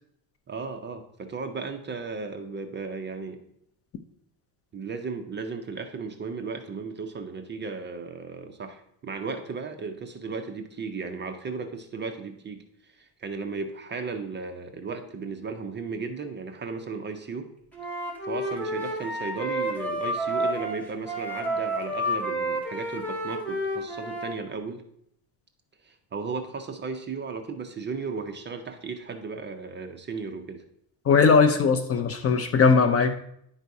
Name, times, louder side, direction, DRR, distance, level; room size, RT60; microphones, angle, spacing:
voice 1, 0.5-3.4 4.7-17.5 18.2-24.8 25.8-30.6, right 4 dB, 25° right, 6 dB, 0.5 m, -35 dB
Wind instrument woodwind instrument, 17.7-24.4, right 1 dB, 5° left, 1.7 m, -30 dB
voice 2, 31.1-33.2, left 5 dB, 30° left, 8 dB, 0.5 m, -19 dB
10.5 x 4.0 x 4.6 m, 0.72 s
cardioid pair, 150°, 48 cm